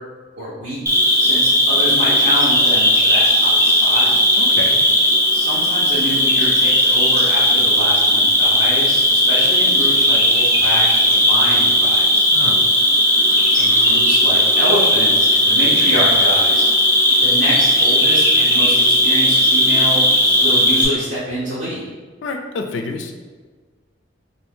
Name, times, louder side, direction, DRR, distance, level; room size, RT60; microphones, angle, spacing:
voice 1, 0.4-0.8 1.2-4.1 5.3-12.3 13.2-16.7 17.2-20.1 20.4-21.8, right 1 dB, 75° right, -9 dB, 0.8 m, -26 dB
Cricket, 0.9-20.9, left 1 dB, 15° right, 0.6 m, -15 dB
voice 2, 4.4-4.9 12.3-12.7 22.2-23.2, left 3 dB, 85° left, 4 dB, 0.3 m, -28 dB
2.7 x 2.5 x 3.5 m, 1.4 s
head